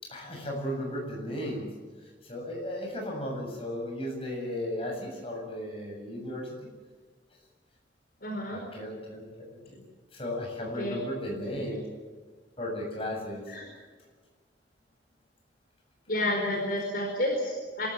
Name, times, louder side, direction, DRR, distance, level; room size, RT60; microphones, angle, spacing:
voice 1, 0.1-1.7 2.3-6.5 8.5-9.8 10.1-11.8 12.6-13.4, left 1 dB, 30° left, 0 dB, 7.5 m, -35 dB
voice 2, 8.2-8.6 10.8-10.9 11.4-11.6 13.5-13.6 16.1-17.9, left 1 dB, 55° left, 0 dB, 4.9 m, -30 dB
26.5 x 14.0 x 9.9 m, 1.4 s
head